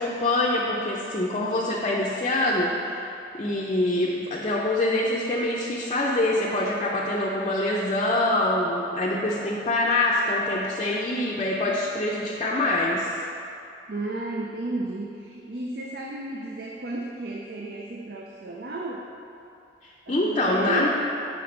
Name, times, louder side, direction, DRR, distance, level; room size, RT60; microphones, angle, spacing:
voice 1, 0.0-3.1 3.3-13.1 19.8-20.9, left 1 dB, 30° left, -5 dB, 0.5 m, -25 dB
voice 2, 13.9-19.1 20.1-20.9, right 2 dB, 60° right, -2 dB, 0.5 m, -33 dB
5.9 x 4.4 x 5.2 m, 2.7 s
head